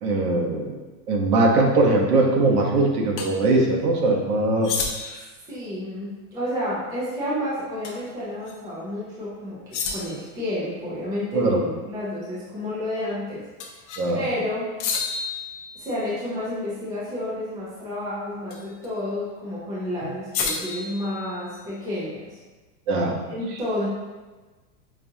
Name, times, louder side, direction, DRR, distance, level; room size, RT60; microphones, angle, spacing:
voice 1, 0.0-0.8 1.1-4.7 5.0-5.2 11.3-11.6 14.0-14.2 22.9-23.2, right 2 dB, 75° right, -1 dB, 1.0 m, -21 dB
sound 1, 3.2-3.3 4.6-5.3 7.8-8.1 8.5-8.6 9.7-10.3 13.6-14.1 14.8-16.2 18.5-18.9 20.3-21.7, left 5 dB, 50° left, 0.6 m, -31 dB
voice 2, 5.5-9.6 9.9-13.4 14.1-15.0 15.7-22.4 23.3-23.9, left 1 dB, 10° right, -9 dB, 0.4 m, -30 dB
5.3 x 2.4 x 2.6 m, 1.3 s
supercardioid pair, 155°, 45 cm